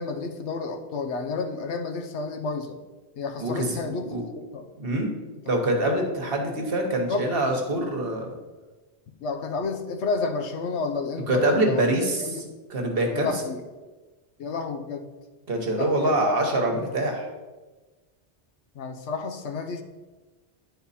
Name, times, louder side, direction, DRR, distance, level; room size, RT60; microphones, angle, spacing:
voice 1, 0.0-2.8 3.2-4.7 7.1-7.2 9.2-11.9 12.2-12.5 13.1-13.6 14.4-15.1 15.8-16.3 18.7-19.8, left 4 dB, 80° left, 5 dB, 1.0 m, -31 dB
voice 2, 3.4-4.2 4.8-5.1 5.5-8.3 11.3-12.4 12.7-13.3 15.5-17.3, right 1 dB, 55° right, 2 dB, 1.3 m, -25 dB
9.5 x 4.1 x 4.1 m, 1.2 s
omnidirectional pair, 1.2 m